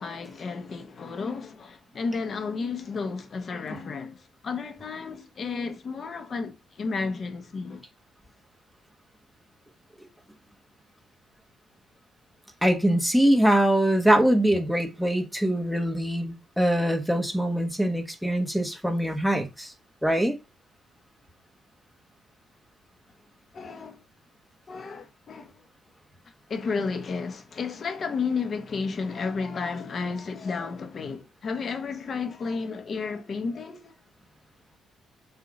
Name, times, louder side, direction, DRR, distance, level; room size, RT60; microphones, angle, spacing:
voice 1, 0.0-7.8 23.5-24.0 24.7-25.6 26.5-33.9, left 4 dB, 45° left, 1.2 m, -32 dB
voice 2, 12.6-19.7 20.0-20.4, right 1 dB, ahead, 1.3 m, -23 dB
7.1 x 2.8 x 5.0 m
cardioid pair, 90°, 0 cm